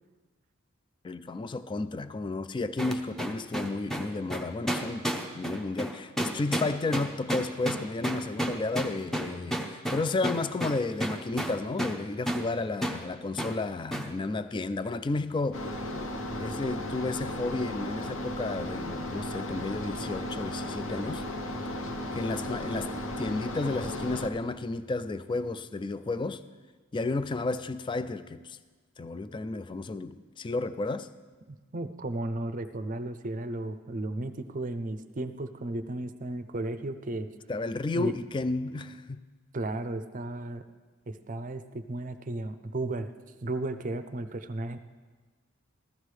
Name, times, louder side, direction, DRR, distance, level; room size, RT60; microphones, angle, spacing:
voice 1, 1.0-5.1 5.3-15.7 16.4-21.2 22.1-26.4 26.9-28.6 29.0-31.1 37.5-39.2, left 3 dB, 25° left, 0.3 m, -32 dB
sound 1, 2.8-12.0 12.3-12.5 12.8-13.0 13.4-13.6 13.9-14.1, equal, ahead, 0.7 m, -31 dB
sound 2, 15.5-24.3, left 1 dB, 70° left, 0.9 m, -35 dB
voice 2, 31.5-37.3 37.9-38.1 39.5-40.6 41.1-43.1 43.4-44.8, right 2 dB, 40° right, 0.5 m, -34 dB
15.0 x 13.5 x 3.3 m
head